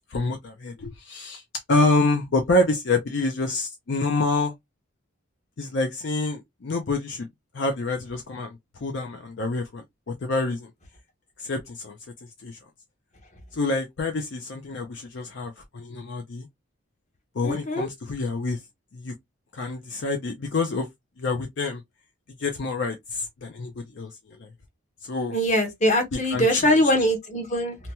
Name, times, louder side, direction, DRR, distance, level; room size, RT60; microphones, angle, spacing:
voice 1, 0.1-1.4 1.7-4.5 5.6-7.3 7.5-10.7 11.4-12.0 12.4-12.6 13.5-16.5 17.4-18.6 18.9-19.1 19.5-20.9 21.2-21.8 22.4-24.1 24.4-24.5 25.0-25.3 26.1-26.8, left 2 dB, 55° left, 0.5 m, -27 dB
voice 2, 17.4-17.9 25.3-27.8, equal, 35° left, 0.9 m, -22 dB
2.8 x 2.2 x 2.8 m
head